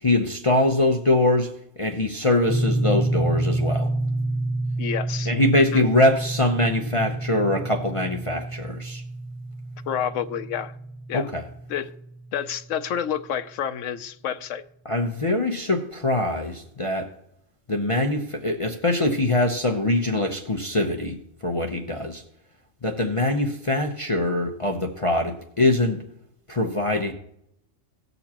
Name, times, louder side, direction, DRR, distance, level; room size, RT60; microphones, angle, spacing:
voice 1, 0.0-3.9 5.3-9.0 11.1-11.4 14.8-17.1 17.7-21.2 21.4-22.2 22.8-26.0 26.5-27.1, left 2 dB, 30° left, 1 dB, 0.7 m, -23 dB
sound 1, 2.4-12.6, right 2 dB, 50° right, 2.7 m, -28 dB
voice 2, 4.8-5.8 9.9-10.7 11.1-11.3 11.7-11.9 12.3-14.6, left 9 dB, 80° left, 11 dB, 1.0 m, -29 dB
17.5 x 6.8 x 2.9 m, 0.75 s
omnidirectional pair, 1.3 m